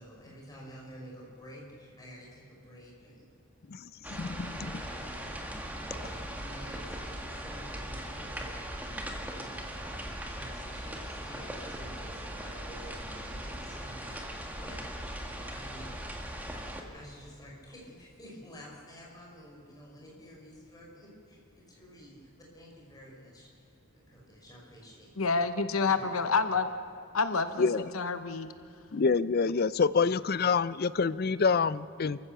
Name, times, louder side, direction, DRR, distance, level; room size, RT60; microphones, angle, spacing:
voice 1, 0.0-3.3 4.3-5.4 6.0-9.9 10.3-14.8 15.5-16.0 16.9-25.4 25.8-26.3, equal, 20° left, -3 dB, 5.1 m, -50 dB
sound 1, 4.0-16.8, right 1 dB, 10° right, 1.7 m, -39 dB
voice 2, 4.1-4.5 27.6-27.9 28.9-32.2, left 5 dB, 45° left, 17 dB, 0.5 m, -26 dB
voice 3, 25.2-26.7 27.1-28.5, left 4 dB, 80° left, 10 dB, 0.9 m, -28 dB
28.5 x 15.0 x 6.8 m, 2.3 s
head